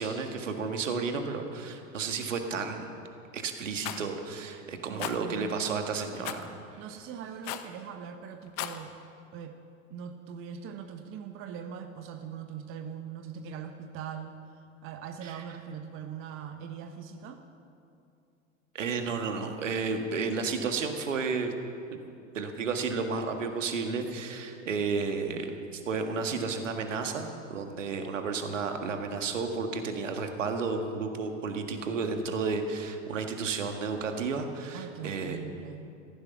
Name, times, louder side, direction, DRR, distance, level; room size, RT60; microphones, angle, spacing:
voice 1, 0.0-2.9 3.3-6.5 15.2-15.4 18.7-21.5 21.9-22.0 22.3-35.4, right 4 dB, 70° right, 5 dB, 1.8 m, -32 dB
Rattle, 3.8-4.0 5.0-5.2 6.2-6.5 7.4-7.7 8.4-8.8, left 13 dB, 40° left, 1.0 m, -35 dB
voice 2, 4.9-5.6 6.8-8.9 9.3-9.6 9.9-14.3 14.8-17.4 34.7-35.9, right 7 dB, 35° right, 7 dB, 1.1 m, -41 dB
16.0 x 15.0 x 5.9 m, 2.5 s
figure-of-eight pair, 85°, 39 cm